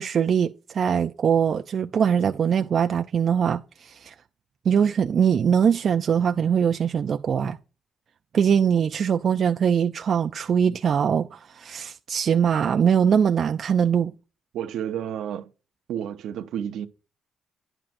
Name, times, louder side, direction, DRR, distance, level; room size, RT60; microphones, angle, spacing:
voice 1, 0.0-4.1 4.7-7.6 8.3-14.1, right 7 dB, 55° right, 0.4 m, -22 dB
voice 2, 14.5-15.5 15.9-16.9, right 9 dB, 80° right, 0.7 m, -31 dB
9.9 x 7.4 x 2.6 m
cardioid pair, 90°, 0 cm